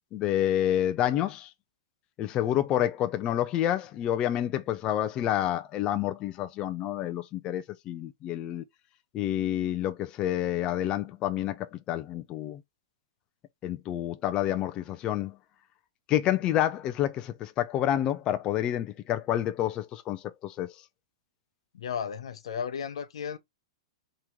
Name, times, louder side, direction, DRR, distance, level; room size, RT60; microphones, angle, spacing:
voice 1, 0.1-1.5 2.2-8.6 9.1-12.6 13.6-15.4 16.1-20.7, left 12 dB, 30° left, 0.5 m, -28 dB
voice 2, 21.7-23.4, left 7 dB, 80° left, 0.8 m, -34 dB
3.8 x 3.0 x 4.5 m
hypercardioid pair, 135°, 3 cm